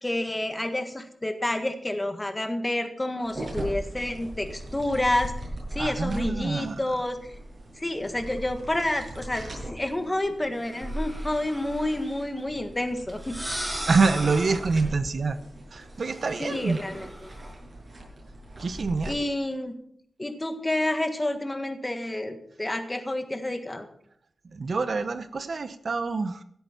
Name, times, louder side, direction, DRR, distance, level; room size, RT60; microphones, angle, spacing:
voice 1, 0.0-5.3 5.7-7.2 7.8-13.4 16.4-17.1 19.1-19.7 20.2-23.8, left 1 dB, 20° left, 7 dB, 1.6 m, -29 dB
sound 1, 3.2-19.1, right 1 dB, 40° right, 7.3 m, -39 dB
voice 2, 5.8-6.8 13.8-15.4 15.7-16.8 18.6-19.2 24.4-26.4, right 4 dB, 60° right, 11 dB, 0.9 m, -26 dB
sound 2, 10.7-12.0 13.1-14.8 16.2-17.5, equal, 10° right, 5.2 m, -37 dB
16.5 x 8.3 x 5.8 m, 0.67 s
wide cardioid pair, 100°, 0 cm